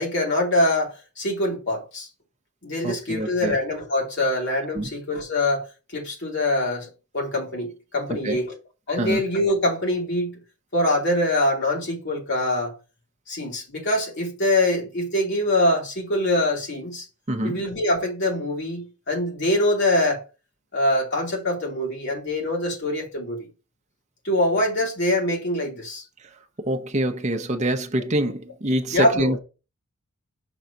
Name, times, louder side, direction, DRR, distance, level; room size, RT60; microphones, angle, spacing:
voice 1, 0.0-2.1 2.6-5.6 5.9-8.5 8.9-10.4 10.7-12.8 13.3-17.1 17.4-20.2 20.7-23.5 24.2-26.0 28.9-29.4, left 1 dB, 50° left, 3.0 m, -24 dB
voice 2, 2.8-3.6 4.7-4.9 8.1-8.4 9.0-9.2 17.3-17.6 26.2-26.3 26.6-29.4, right 1 dB, 30° right, 0.8 m, -25 dB
6.1 x 3.9 x 5.6 m
head